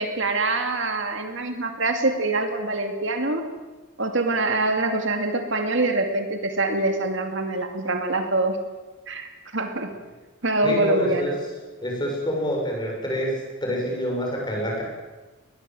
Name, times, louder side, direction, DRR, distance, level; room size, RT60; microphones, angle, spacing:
voice 1, 0.0-3.5 4.0-8.6 9.1-9.9 10.4-11.4, right 2 dB, 65° right, 5 dB, 2.3 m, -24 dB
voice 2, 10.6-11.3 11.8-14.8, equal, 20° left, -1 dB, 6.9 m, -27 dB
21.0 x 21.0 x 7.7 m, 1.2 s
head